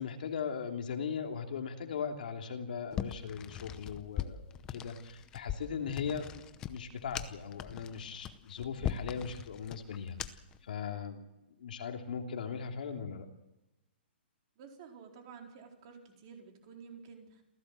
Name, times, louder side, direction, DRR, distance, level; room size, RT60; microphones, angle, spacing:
voice 1, 0.0-4.4 4.7-11.3 11.6-13.3, left 6 dB, 50° left, 4 dB, 3.0 m, -39 dB
sound 1, 2.9-10.6, left 10 dB, 10° left, 0.7 m, -40 dB
voice 2, 14.6-17.4, right 6 dB, 25° right, 2 dB, 4.4 m, -51 dB
28.5 x 16.5 x 7.7 m, 0.95 s
hypercardioid pair, 180°, 6 cm